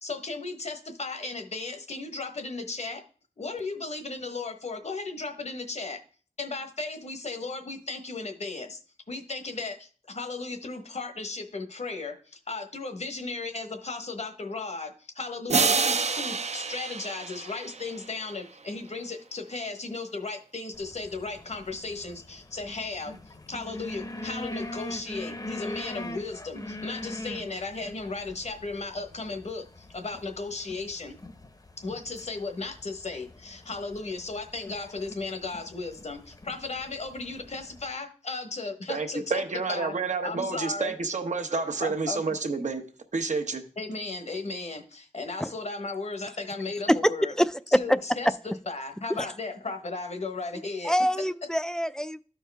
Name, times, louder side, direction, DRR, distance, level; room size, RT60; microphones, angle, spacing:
voice 1, 0.0-3.0 3.4-6.0 6.4-8.8 9.1-31.1 31.8-39.4 39.7-39.9 40.2-40.9 41.8-42.4 43.8-47.3 47.7-48.3 48.7-50.9, left 3 dB, 65° left, 1.1 m, -35 dB
sound 1, 15.5-18.4, right 4 dB, 65° right, 0.6 m, -28 dB
sound 2, 20.7-37.9, left 1 dB, 30° left, 0.7 m, -43 dB
voice 2, 38.9-42.8 43.1-43.6, right 4 dB, 80° right, 1.0 m, -29 dB
voice 3, 47.4-48.0 49.2-49.3 50.8-52.2, equal, 5° left, 0.3 m, -24 dB
13.0 x 4.5 x 3.4 m
wide cardioid pair, 80°, 12 cm